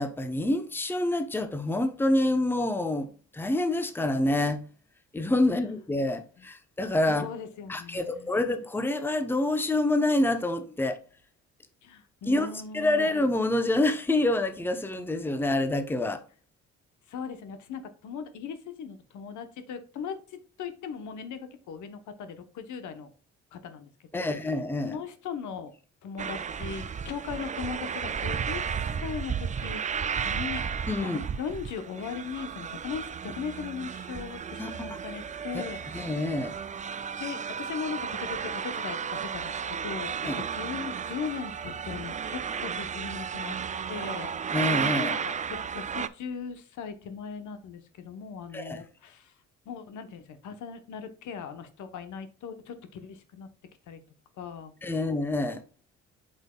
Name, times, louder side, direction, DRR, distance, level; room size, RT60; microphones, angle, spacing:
voice 1, 0.0-4.7 5.1-7.3 7.7-11.0 12.3-12.5 12.7-16.2 24.1-25.0 30.9-31.2 34.6-34.7 35.5-35.6 35.9-36.6 40.2-40.4 44.5-45.1 48.5-48.8 54.8-55.6, left 2 dB, 5° left, 0.7 m, -27 dB
voice 2, 7.1-8.4 11.8-13.1 17.1-23.1 23.5-24.3 24.8-25.7 26.0-29.8 30.2-30.7 31.0-36.1 37.2-40.1 40.5-43.6 43.9-44.6 44.9-49.3 49.7-53.5 53.9-54.0 54.4-55.0, left 6 dB, 75° left, 1.0 m, -39 dB
sound 1, 26.2-46.1, right 7 dB, 25° right, 0.4 m, -33 dB
7.9 x 5.4 x 2.2 m
cardioid pair, 90°, 30 cm